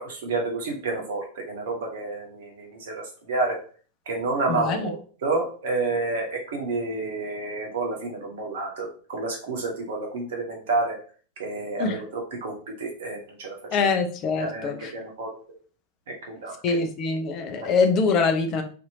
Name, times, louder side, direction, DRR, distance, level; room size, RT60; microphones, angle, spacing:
voice 1, 0.0-3.6 4.1-11.0 11.4-13.9 14.4-15.3 16.3-16.8 17.6-17.9, right 3 dB, 55° right, 1 dB, 0.8 m, -30 dB
voice 2, 4.5-4.9 11.8-12.0 13.7-14.9 16.6-18.6, left 4 dB, 35° left, 6 dB, 0.5 m, -24 dB
2.7 x 2.5 x 2.7 m, 0.41 s
figure-of-eight pair, 90°, 0 cm